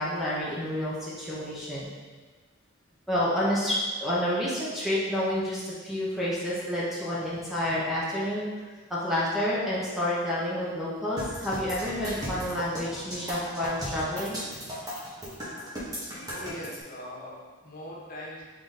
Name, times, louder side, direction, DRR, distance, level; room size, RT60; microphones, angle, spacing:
voice 1, 0.0-1.9 3.1-8.5 8.9-14.4, left 1 dB, ahead, -8 dB, 0.7 m, -29 dB
sound 1, 11.2-16.8, equal, 20° right, 1.1 m, -36 dB
voice 2, 16.3-18.4, equal, 45° left, -5 dB, 1.0 m, -41 dB
3.6 x 3.6 x 4.1 m, 1.4 s
head